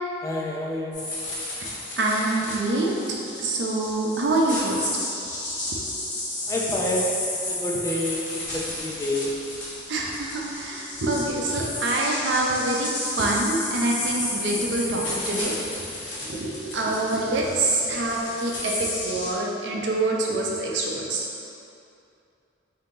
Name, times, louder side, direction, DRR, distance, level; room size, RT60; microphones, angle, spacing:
voice 1, 0.2-1.1 6.5-9.3 16.3-16.4, left 1 dB, 15° left, -2 dB, 0.3 m, -28 dB
sound 1, 0.9-19.3, left 2 dB, 80° left, 1.1 m, -32 dB
voice 2, 2.0-2.9 3.4-4.9 9.9-21.5, right 2 dB, 75° right, -2 dB, 0.6 m, -26 dB
3.8 x 2.7 x 3.7 m, 2.6 s
head